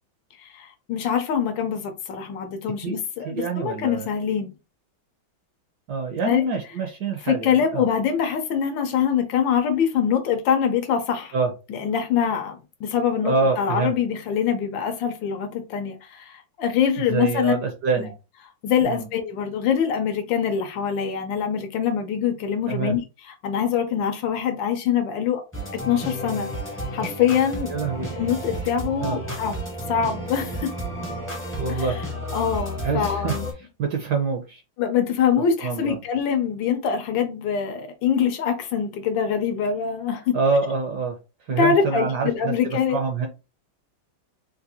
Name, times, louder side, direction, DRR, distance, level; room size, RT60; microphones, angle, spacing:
voice 1, 0.4-4.6 6.2-6.4 7.3-11.3 11.7-17.5 18.0-18.1 18.6-23.0 23.4-25.4 25.7-26.5 26.9-27.7 28.1-29.6 29.9-30.7 31.7-31.9 32.3-33.4 34.8-40.3 41.6-43.0, left 7 dB, 75° left, 1.3 m, -24 dB
voice 2, 3.2-4.1 5.9-7.9 11.3-11.5 13.2-13.9 17.1-18.1 18.8-19.1 22.7-23.0 27.7-28.1 29.0-29.2 31.6-32.0 32.8-34.6 35.4-36.0 40.3-41.2 41.5-43.3, right 4 dB, 65° right, 1.1 m, -26 dB
sound 1, 25.5-33.5, equal, 10° left, 0.6 m, -32 dB
3.9 x 2.5 x 2.8 m
omnidirectional pair, 2.3 m